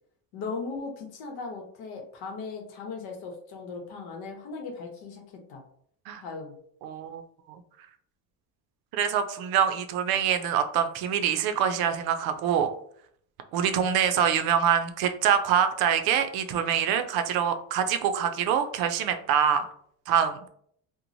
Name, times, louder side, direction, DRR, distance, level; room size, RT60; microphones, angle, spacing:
voice 1, 0.3-5.2 5.5-5.6 6.2-6.6, left 4 dB, 85° left, 3 dB, 0.8 m, -37 dB
voice 2, 6.8-7.2 8.9-12.7 13.5-19.6 20.1-20.4, right 8 dB, 75° right, 8 dB, 0.5 m, -25 dB
3.0 x 2.1 x 2.6 m, 0.65 s
cardioid pair, 140°, 36 cm